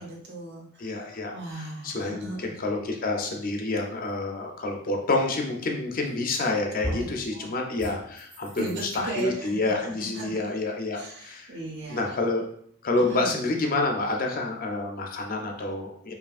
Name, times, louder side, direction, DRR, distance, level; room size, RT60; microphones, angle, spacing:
voice 1, 0.0-2.6 7.0-7.1 7.3-7.5 8.6-10.4 10.9-12.2 13.0-13.3, right 2 dB, 50° right, -2 dB, 1.0 m, -37 dB
voice 2, 0.8-11.6 11.9-12.5 12.8-16.1, left 2 dB, 40° left, 2 dB, 0.5 m, -28 dB
sound 1, 6.0-6.4 6.8-7.2 7.8-9.2, equal, 10° right, 0.6 m, -36 dB
4.9 x 2.7 x 2.4 m, 0.65 s
head